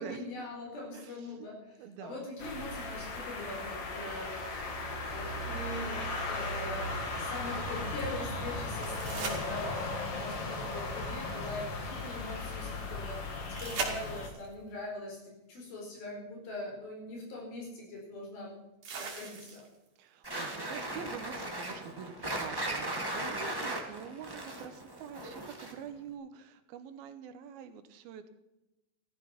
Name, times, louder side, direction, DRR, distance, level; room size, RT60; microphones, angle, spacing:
voice 1, 0.0-4.4 5.1-18.5 19.0-19.6, left 2 dB, 70° left, 0 dB, 6.3 m, -42 dB
voice 2, 1.8-2.3 20.0-28.3, right 7 dB, 80° right, 10 dB, 2.8 m, -46 dB
sound 1, 2.4-14.3, left 2 dB, 45° left, 2.2 m, -37 dB
sound 2, 8.8-10.1 13.6-14.5 16.4-16.5 18.8-19.9 22.8-22.9, right 4 dB, 55° right, 3.9 m, -39 dB
sound 3, 20.2-25.9, right 1 dB, 40° right, 0.3 m, -37 dB
15.5 x 13.0 x 5.9 m, 0.96 s
omnidirectional pair, 4.4 m